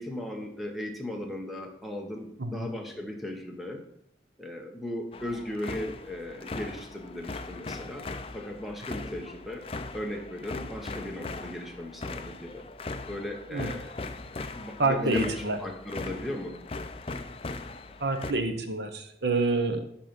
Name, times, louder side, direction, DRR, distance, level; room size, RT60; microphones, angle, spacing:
voice 1, 0.0-3.8 4.4-9.7 9.9-12.6 13.1-14.0 14.5-16.5, left 1 dB, ahead, 2 dB, 1.1 m, -37 dB
sound 1, 5.1-18.3, left 3 dB, 30° left, 0.5 m, -39 dB
voice 2, 14.8-15.6 18.0-19.9, right 3 dB, 70° right, 8 dB, 1.0 m, -27 dB
11.5 x 4.3 x 5.2 m, 0.71 s
head